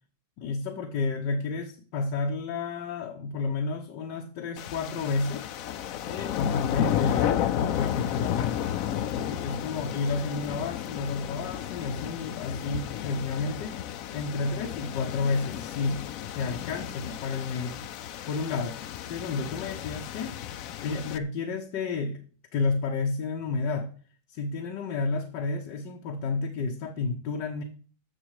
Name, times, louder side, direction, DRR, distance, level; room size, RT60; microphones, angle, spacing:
voice 1, 0.4-5.5 6.0-8.8 9.1-13.8 14.1-16.0 16.3-17.8 18.2-20.4 20.8-22.2 22.5-23.9 24.3-27.6, left 4 dB, 90° left, 3 dB, 1.7 m, -31 dB
sound 1, 4.6-21.2, left 11 dB, 65° left, 0.9 m, -33 dB
14.5 x 6.6 x 4.8 m, 0.42 s
omnidirectional pair, 1.8 m